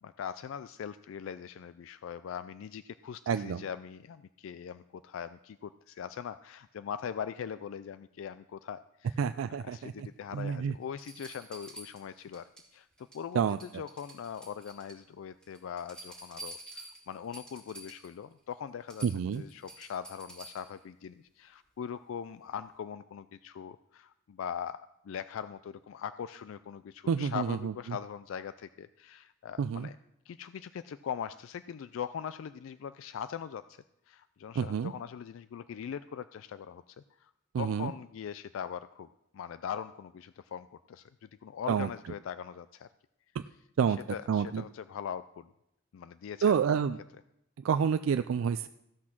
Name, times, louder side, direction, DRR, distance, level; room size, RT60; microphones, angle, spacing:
voice 1, 0.0-9.2 9.6-30.0 30.3-37.3 37.6-39.1 39.3-42.9 44.1-45.5 45.9-46.6, left 8 dB, 80° left, 13 dB, 0.3 m, -41 dB
voice 2, 3.3-3.6 9.2-10.1 10.3-10.7 13.3-13.6 19.0-19.4 27.1-27.7 29.6-29.9 34.6-34.9 37.5-37.9 41.7-41.9 43.3-43.4 43.8-44.0 44.3-44.6 46.4-47.0 47.6-48.7, right 7 dB, 90° right, 10 dB, 0.3 m, -28 dB
sound 1, 10.3-10.4 11.0-12.7 13.0-13.3 13.6-15.0 15.4-18.1 18.5-18.6 18.9-20.8 22.5-22.6, right 1 dB, 5° left, 3.2 m, -49 dB
15.0 x 6.1 x 5.9 m, 0.83 s
head